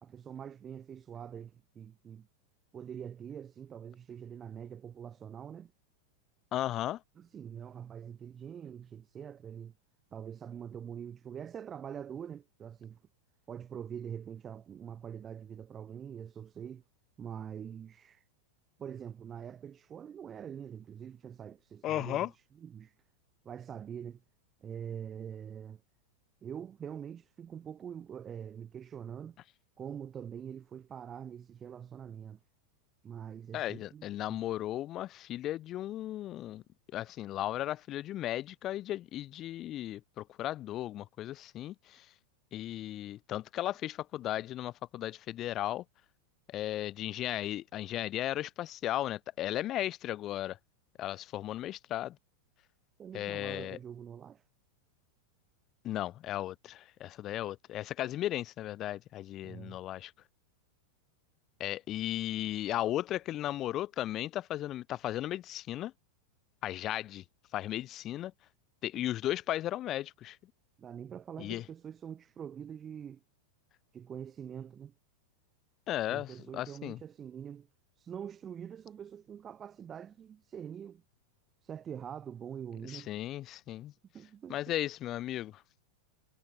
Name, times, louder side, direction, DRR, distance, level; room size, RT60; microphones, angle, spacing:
voice 1, 0.0-2.3 2.7-5.7 7.2-9.7 10.1-13.0 13.5-16.8 17.2-18.2 18.8-22.9 23.4-24.2 24.6-25.8 26.4-29.4 29.8-32.4 33.0-34.4 53.0-54.4 59.4-59.8 70.8-73.2 73.9-74.9 76.1-77.7 78.0-81.0 81.6-83.1 84.1-84.7, right 8 dB, 25° right, 0.7 m, -44 dB
voice 2, 6.5-7.0 21.8-22.3 33.5-36.6 36.9-42.1 42.5-45.8 46.5-50.6 51.0-52.2 53.1-53.8 55.8-60.1 61.6-65.9 66.6-67.2 67.5-68.3 68.8-70.4 71.4-71.6 75.9-77.0 82.9-83.9 84.5-85.6, left 13 dB, 35° left, 0.7 m, -35 dB
figure-of-eight pair, 90°, 0 cm